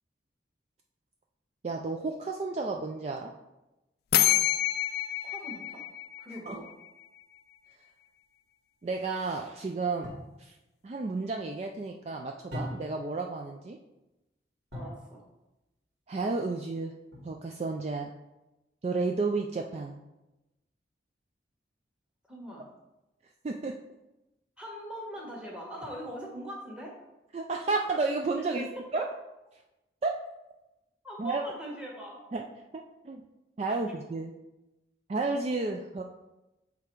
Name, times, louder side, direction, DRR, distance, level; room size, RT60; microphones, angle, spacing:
voice 1, 1.6-3.3 6.5-6.6 8.8-10.1 10.4-10.5 10.8-13.8 16.1-16.9 17.2-18.1 18.8-20.0 23.4-23.7 27.3-28.7 28.9-29.1 30.0-30.1 31.2-31.4 32.3-32.4 33.0-33.2 33.6-34.3 35.1-36.0, right 3 dB, 35° right, 2 dB, 0.3 m, -31 dB
sound 1, 4.1-6.9, left 13 dB, 60° left, 0.3 m, -28 dB
voice 2, 5.2-5.8 6.2-6.7 14.7-15.2 22.3-22.7 24.6-26.9 28.5-28.6 31.0-32.2 33.7-33.8, equal, 5° right, -2 dB, 1.3 m, -41 dB
sound 2, 10.0-10.4 12.5-13.1 14.7-15.1 17.1-17.6, equal, 90° right, 2.3 m, -40 dB
6.8 x 3.5 x 4.5 m, 0.98 s
head